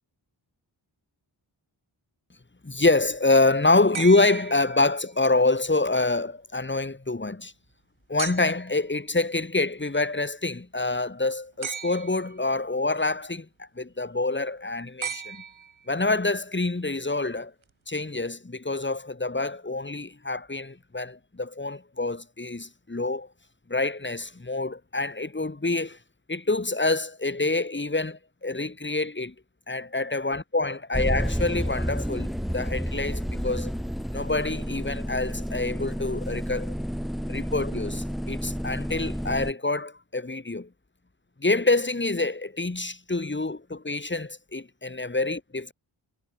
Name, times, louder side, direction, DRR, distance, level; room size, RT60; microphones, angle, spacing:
voice 1, 2.6-7.5 8.1-15.4 15.9-17.5 17.9-23.3 23.7-26.0 26.3-29.3 29.7-33.7 34.1-36.7 37.3-40.7 41.4-45.7, left 2 dB, 25° left, 2.1 m, -26 dB
sound 1, 3.9-5.3 8.2-8.8 11.6-12.4 15.0-16.1 17.6-17.7, right 7 dB, 85° right, 1.7 m, -37 dB
sound 2, 30.9-39.5, equal, ahead, 2.8 m, -30 dB
wide cardioid pair, 75°, 46 cm